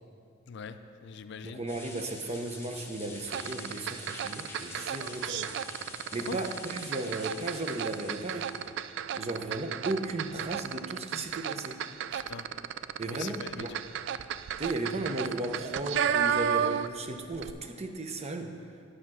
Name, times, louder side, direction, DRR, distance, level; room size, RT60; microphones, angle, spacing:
voice 1, 0.5-1.6 6.3-6.4 12.1-12.5 13.0-13.8, left 6 dB, 60° left, 9 dB, 0.5 m, -42 dB
voice 2, 1.4-5.5 6.1-8.5 9.2-11.8 13.0-13.8 14.6-18.6, right 2 dB, 35° right, 5 dB, 0.7 m, -35 dB
sound 1, 1.7-8.7, left 3 dB, 15° left, 1.0 m, -46 dB
sound 2, 3.3-17.1 17.3-17.5, right 8 dB, 65° right, 0.3 m, -33 dB
9.8 x 6.4 x 6.1 m, 2.5 s
head